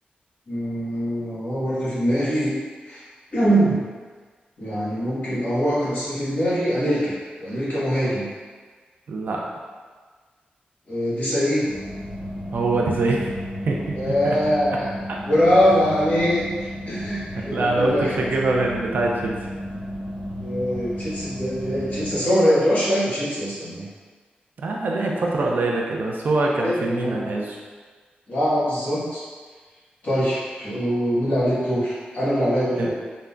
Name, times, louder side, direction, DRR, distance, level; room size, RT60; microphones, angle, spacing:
voice 1, 0.5-2.6 2.8-3.0 3.3-3.9 4.6-8.3 10.9-11.7 13.9-14.9 15.2-16.5 16.9-18.1 20.4-23.9 26.6-27.3 28.3-29.2 30.0-32.9, equal, 50° left, -10 dB, 1.4 m, -23 dB
voice 2, 9.1-9.4 12.5-13.4 13.7-14.0 14.2-14.4 17.3-19.4 21.7-21.8 24.6-27.6 32.8-32.9, right 2 dB, 65° right, -2 dB, 0.4 m, -24 dB
sound 1, 11.7-22.2, equal, 5° left, 1.1 m, -33 dB
3.7 x 2.1 x 2.2 m, 1.5 s
wide cardioid pair, 95°, 3 cm